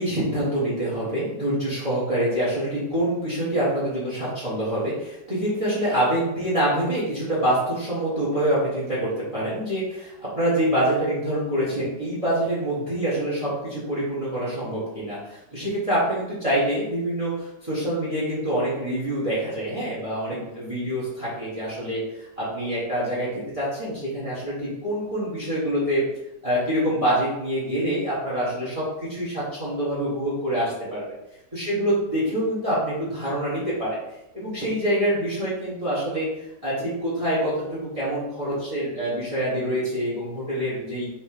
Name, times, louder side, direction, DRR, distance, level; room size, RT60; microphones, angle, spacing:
voice 1, 0.0-23.3 23.5-26.0 26.4-31.0 31.5-34.0 34.3-36.3 36.6-41.1, right 1 dB, 20° right, -8 dB, 1.8 m, -26 dB
6.5 x 3.3 x 5.0 m, 0.90 s
omnidirectional pair, 1.9 m